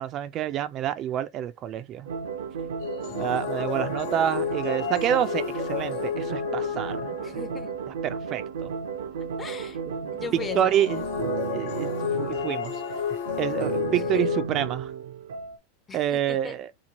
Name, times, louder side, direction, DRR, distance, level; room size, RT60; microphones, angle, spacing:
voice 1, 0.0-2.1 3.2-7.1 8.0-8.7 10.0-10.1 10.5-11.0 11.5-11.9 12.2-12.8 13.4-14.9 15.9-16.7, right 10 dB, 40° right, 0.3 m, -28 dB
sound 1, 2.1-15.6, right 6 dB, 90° right, 0.6 m, -33 dB
sound 2, 2.8-7.9 10.4-14.4, left 9 dB, 70° left, 0.7 m, -31 dB
voice 2, 7.2-7.7 9.4-9.8 10.1-10.7 13.9-14.3 15.9-16.6, left 5 dB, 20° left, 0.5 m, -38 dB
2.9 x 2.4 x 2.8 m
supercardioid pair, 120°, 0 cm